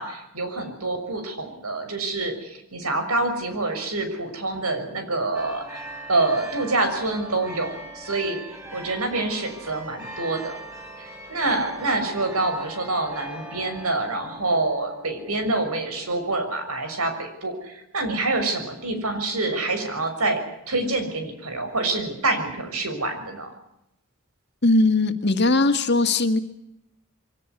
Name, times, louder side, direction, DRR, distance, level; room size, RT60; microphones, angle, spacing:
voice 1, 0.0-8.4 8.7-10.5 11.0-23.5, right 2 dB, 90° right, 7 dB, 6.2 m, -26 dB
sound 1, 5.3-16.4, right 1 dB, 15° right, 7.1 m, -41 dB
voice 2, 24.6-26.4, left 2 dB, 50° left, 7 dB, 2.0 m, -19 dB
24.0 x 17.5 x 9.8 m, 0.80 s
head